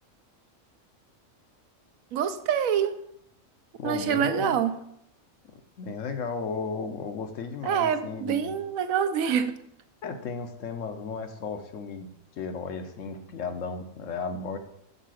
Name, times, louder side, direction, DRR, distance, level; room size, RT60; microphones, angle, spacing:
voice 1, 2.1-3.0 3.8-4.7 7.6-9.5, right 8 dB, 75° right, 10 dB, 1.0 m, -26 dB
voice 2, 3.8-4.6 5.8-8.6 10.0-12.1 12.4-14.6, left 5 dB, 70° left, 7 dB, 1.1 m, -34 dB
6.6 x 4.1 x 6.2 m, 0.74 s
omnidirectional pair, 1.4 m